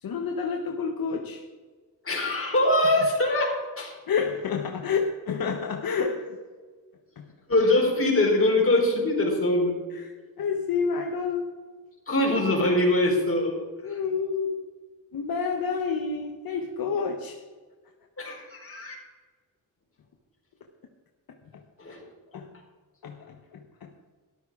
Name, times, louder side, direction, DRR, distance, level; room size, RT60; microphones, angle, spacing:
voice 1, 0.0-1.4 4.1-6.3 7.2-7.3 9.9-11.5 13.8-14.6 15.1-17.4 22.3-22.5 23.0-23.9, left 5 dB, 70° left, 3 dB, 1.2 m, -29 dB
voice 2, 2.0-3.9 7.5-9.8 12.1-13.6 13.8-14.0 18.2-19.0 21.8-22.0, left 1 dB, 35° left, -1 dB, 4.5 m, -23 dB
13.5 x 12.0 x 4.9 m, 1.4 s
wide cardioid pair, 105°, 36 cm